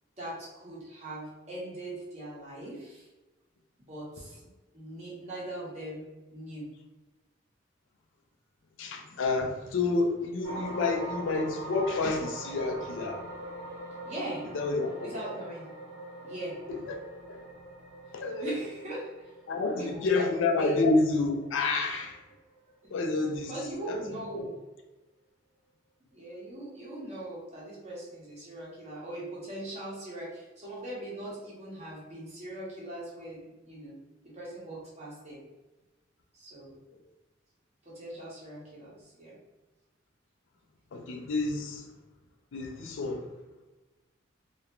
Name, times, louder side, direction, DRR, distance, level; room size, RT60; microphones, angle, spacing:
voice 1, 0.2-3.1 3.9-4.4 4.7-6.7 14.0-14.5 15.0-15.7 16.2-16.6 18.4-19.1 19.7-20.0 20.6-20.7 22.8-22.9 23.5-24.6 26.1-35.4 36.3-36.8 37.8-39.4, right 1 dB, 35° right, 0.8 m, -40 dB
voice 2, 8.8-13.2 14.5-15.1 16.7-17.0 17.3-17.4 18.1-18.5 19.5-22.2 22.9-23.5 23.8-24.0 24.3-24.4 36.9-37.0 40.9-41.9 42.5-43.3, left 3 dB, 75° left, 0.4 m, -29 dB
sound 1, 10.4-22.8 23.3-23.5, right 1 dB, 85° right, 1.0 m, -43 dB
2.4 x 2.1 x 2.9 m
head